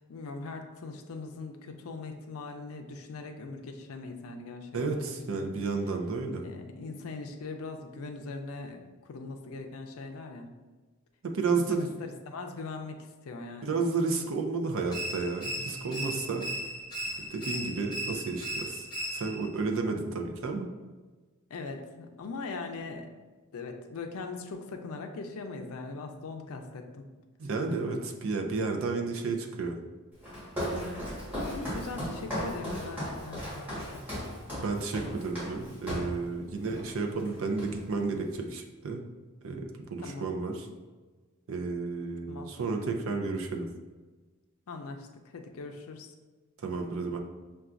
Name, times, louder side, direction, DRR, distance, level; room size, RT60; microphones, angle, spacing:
voice 1, 0.1-5.5 6.4-10.5 11.5-13.8 14.2-14.3 21.5-23.1 23.5-27.1 30.7-31.0 31.5-34.0 40.0-40.3 42.3-42.5 44.7-45.1 45.3-46.1, left 3 dB, 75° left, 4 dB, 0.4 m, -41 dB
voice 2, 4.7-6.4 11.2-11.9 13.6-16.5 17.3-18.9 19.1-20.7 27.4-29.7 34.6-39.0 39.4-40.7 41.5-43.7 46.6-47.2, right 4 dB, 65° right, 3 dB, 0.5 m, -32 dB
sound 1, 14.9-19.5, right 1 dB, 20° left, 0.8 m, -37 dB
Walk footsteps, 30.2-36.2 36.7-36.9 37.2-38.0, equal, 5° right, 1.3 m, -36 dB
5.6 x 2.3 x 2.5 m, 1.3 s
head